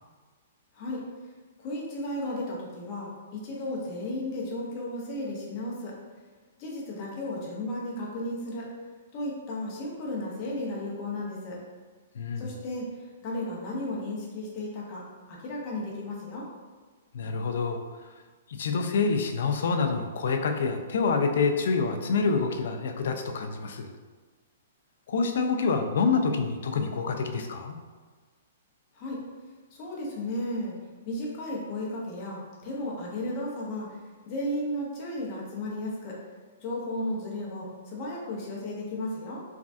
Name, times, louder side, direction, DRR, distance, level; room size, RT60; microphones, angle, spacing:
voice 1, 1.6-5.9 6.6-8.7 9.1-11.6 12.4-16.5 28.9-29.2 29.7-30.7 31.0-34.0 34.3-36.2 36.6-39.4, left 1 dB, 30° left, -4 dB, 0.7 m, -34 dB
voice 2, 12.1-12.5 17.1-17.8 18.5-23.9 25.1-27.8, left 4 dB, 65° left, 5 dB, 0.3 m, -27 dB
3.2 x 2.3 x 2.5 m, 1.4 s
hypercardioid pair, 165°, 0 cm